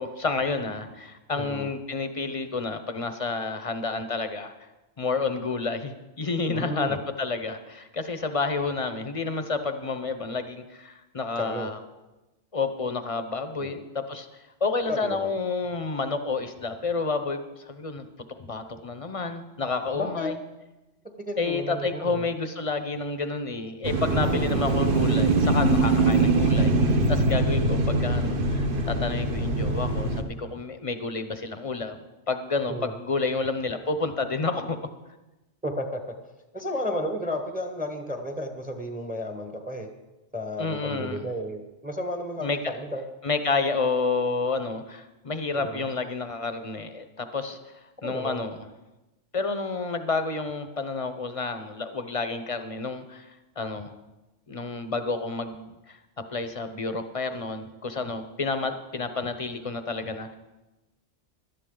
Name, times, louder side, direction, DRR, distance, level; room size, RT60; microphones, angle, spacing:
voice 1, 0.0-4.5 5.0-11.8 12.5-14.3 14.6-20.4 21.4-32.0 32.3-34.8 40.6-41.3 42.4-42.7 43.2-47.6 48.0-48.6 49.3-53.3 53.6-53.9 54.5-56.0 56.3-60.3, left 3 dB, 30° left, 9 dB, 0.8 m, -30 dB
voice 2, 1.4-1.7 6.5-7.0 11.4-11.7 13.6-13.8 14.9-15.4 19.9-20.3 21.3-22.3 24.1-24.5 32.7-32.9 35.6-36.0 36.5-39.9 40.3-43.0 45.5-45.9 47.5-47.6 48.0-48.4, left 1 dB, 10° right, 5 dB, 1.0 m, -32 dB
sound 1, 23.8-30.2, right 2 dB, 50° right, 1.2 m, -23 dB
17.5 x 12.0 x 3.8 m, 1.1 s
omnidirectional pair, 1.2 m